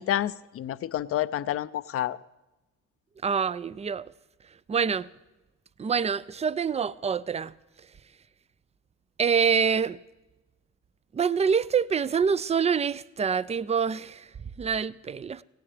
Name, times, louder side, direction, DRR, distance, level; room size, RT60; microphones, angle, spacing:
voice 1, 0.0-2.2, left 12 dB, 50° left, 0.5 m, -29 dB
voice 2, 3.2-4.0 4.7-5.1 5.8-7.5 9.2-10.0 11.1-14.3 14.6-15.4, right 6 dB, 20° right, 0.4 m, -26 dB
18.0 x 17.0 x 3.3 m
cardioid pair, 90°, 30 cm